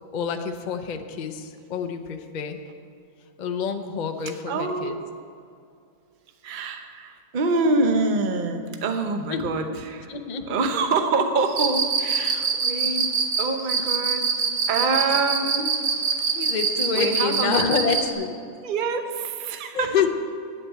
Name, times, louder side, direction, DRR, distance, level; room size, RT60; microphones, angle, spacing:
voice 1, 0.1-2.6 3.4-5.0 9.3-9.5 10.1-10.6 16.3-18.4 19.7-20.1, left 6 dB, 75° left, 6 dB, 0.4 m, -27 dB
voice 2, 4.5-4.9 6.4-10.1 10.5-13.1 13.4-14.2 14.7-15.7 16.9-17.7 18.6-19.9, right 3 dB, 40° right, 6 dB, 0.7 m, -25 dB
Cricket, 11.5-18.1, right 6 dB, 70° right, 1.8 m, -23 dB
8.8 x 7.9 x 9.1 m, 2.4 s
omnidirectional pair, 1.9 m